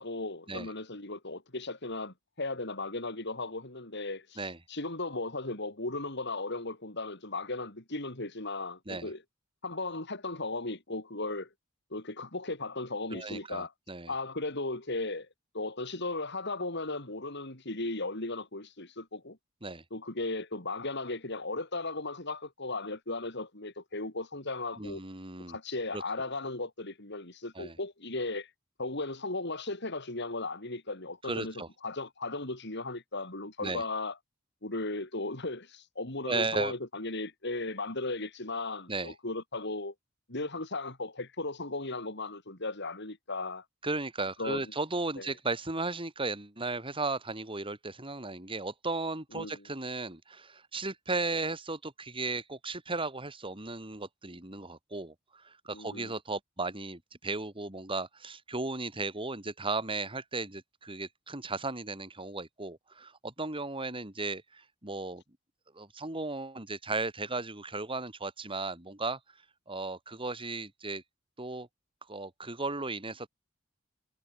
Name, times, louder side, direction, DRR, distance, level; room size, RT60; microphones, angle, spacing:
voice 1, 0.0-4.4 4.7-9.2 9.6-11.5 11.9-13.7 14.1-15.3 15.5-19.4 19.9-25.0 25.5-28.5 28.8-34.1 34.6-39.9 40.3-43.6 44.4-44.7 45.2-45.3 49.3-49.6 55.7-56.2, left 2 dB, 60° left, 5.0 m, -36 dB
voice 2, 13.1-14.1 19.6-19.8 24.8-25.6 25.9-26.0 27.6-27.8 31.2-31.7 33.6-33.8 36.3-36.7 38.9-39.1 43.8-65.2 65.7-69.2 69.7-71.0 71.4-71.7 72.1-73.3, right 3 dB, 25° right, 3.9 m, -35 dB
head